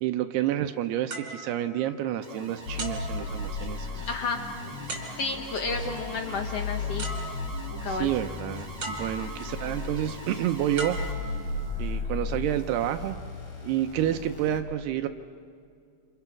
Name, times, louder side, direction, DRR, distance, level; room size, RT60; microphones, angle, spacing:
voice 1, 0.0-4.1 7.9-11.0 11.8-13.2 13.6-15.1, right 12 dB, 80° right, 7 dB, 2.7 m, -29 dB
sound 1, 1.1-2.3 2.8-3.9 4.9-5.6 6.6-6.7 7.0-7.8 8.8-9.6 10.8-11.9 12.6-12.8, right 2 dB, 35° right, 3.6 m, -39 dB
Alarm, 2.2-11.1, right 1 dB, 15° right, 1.2 m, -44 dB
sound 2, 2.7-14.6, left 3 dB, 45° left, 4.0 m, -35 dB
voice 2, 4.1-4.4 5.2-7.1 7.8-8.1, left 4 dB, 70° left, 5 dB, 1.5 m, -31 dB
27.5 x 27.5 x 5.9 m, 2.3 s
omnidirectional pair, 4.7 m